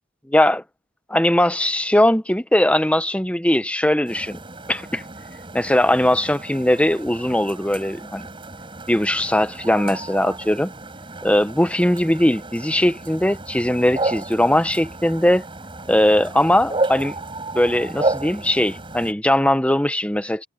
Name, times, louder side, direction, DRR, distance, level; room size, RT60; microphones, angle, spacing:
voice 1, 0.3-0.6 1.1-4.4 4.7-5.0 5.5-8.3 8.9-10.7 11.2-15.4 15.9-17.2 17.5-20.4, left 1 dB, 5° left, 0.9 m, -19 dB
sound 1, 4.1-19.1, right 2 dB, 25° right, 5.5 m, -32 dB
head